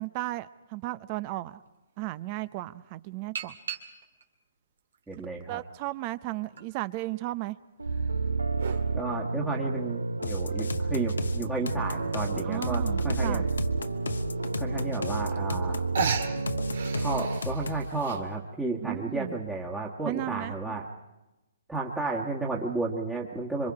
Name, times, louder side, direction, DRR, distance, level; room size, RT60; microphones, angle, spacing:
voice 1, 0.0-1.6 2.0-3.6 5.2-7.6 12.4-13.5 18.8-19.4 20.0-20.5, right 18 dB, 35° right, 17 dB, 0.7 m, -35 dB
sound 1, 1.6-1.7 3.4-4.2 4.9-5.9 6.6-6.7 7.8-8.9 10.6-10.7 11.1-11.2 11.4-11.5 11.9-12.2 13.2-13.3 13.8-13.9 15.0-15.1 15.3-15.7 15.9-18.2, right 6 dB, 70° right, 2.1 m, -35 dB
voice 2, 5.1-5.6 8.9-13.5 14.6-15.8 17.0-20.9 21.7-23.7, right 3 dB, 10° right, -4 dB, 1.6 m, -32 dB
sound 2, 7.8-17.4, right 3 dB, 90° right, 0.7 m, -30 dB
sound 3, 10.2-17.9, left 2 dB, 80° left, 1.1 m, -34 dB
27.0 x 23.5 x 4.9 m, 1.0 s
hypercardioid pair, 135°, 0 cm